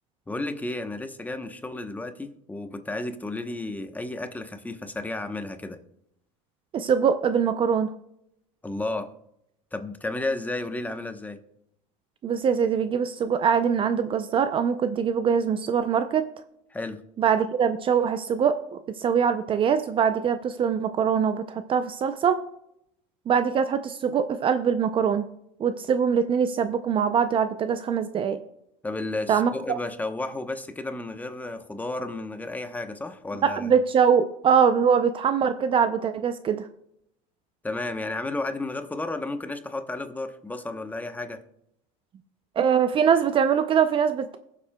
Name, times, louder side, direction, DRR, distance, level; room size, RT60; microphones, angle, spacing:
voice 1, 0.3-5.8 8.6-9.1 9.7-11.4 16.7-17.0 28.8-33.7 37.6-41.4, left 2 dB, 10° left, 8 dB, 0.9 m, -32 dB
voice 2, 6.7-7.9 12.2-16.3 17.2-22.4 23.3-25.3 25.6-28.4 29.3-29.8 33.4-36.6 42.6-44.4, right 7 dB, 35° right, 10 dB, 0.5 m, -23 dB
22.0 x 7.4 x 2.3 m, 0.77 s
supercardioid pair, 120°, 16 cm